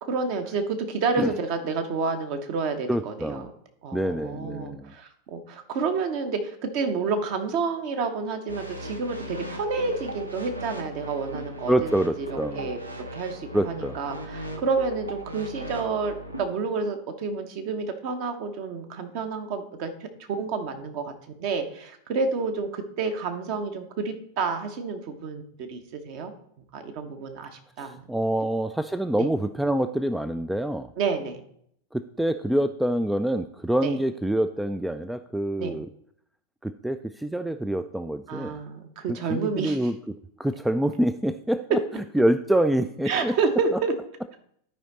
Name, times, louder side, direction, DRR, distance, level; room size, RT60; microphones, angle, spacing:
voice 1, 0.0-3.5 3.8-11.9 12.2-12.8 13.1-20.1 20.4-21.1 21.4-26.3 26.7-28.1 29.1-29.3 31.0-31.4 33.8-34.0 35.6-35.8 38.3-39.9 43.1-43.9, right 4 dB, 45° right, 6 dB, 1.1 m, -29 dB
voice 2, 2.9-3.5 3.9-4.9 11.7-12.7 13.5-14.0 27.8-30.9 31.9-35.9 36.6-38.6 39.3-40.0 40.4-43.3, right 1 dB, 5° right, 11 dB, 0.3 m, -26 dB
sound 1, 8.5-16.4, equal, 85° right, 1.0 m, -38 dB
12.0 x 5.0 x 4.2 m, 0.69 s
figure-of-eight pair, 90°, 0 cm